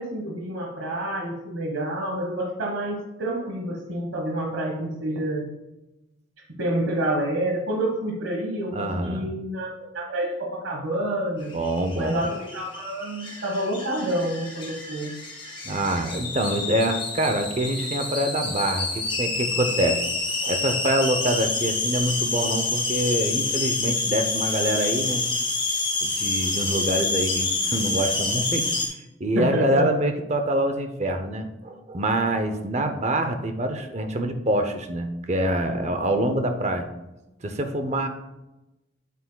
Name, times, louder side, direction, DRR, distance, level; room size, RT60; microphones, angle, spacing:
voice 1, 0.0-5.5 6.6-11.5 12.0-15.1 29.3-29.9, right 1 dB, 75° right, 0 dB, 1.2 m, -28 dB
voice 2, 8.7-9.3 11.5-12.2 15.6-20.0 20.4-25.2 26.0-28.7 29.2-36.9 37.4-38.1, right 1 dB, 35° right, 7 dB, 0.6 m, -25 dB
sound 1, 11.5-28.9, left 3 dB, 25° left, 1.9 m, -28 dB
8.3 x 7.8 x 2.2 m, 0.98 s
head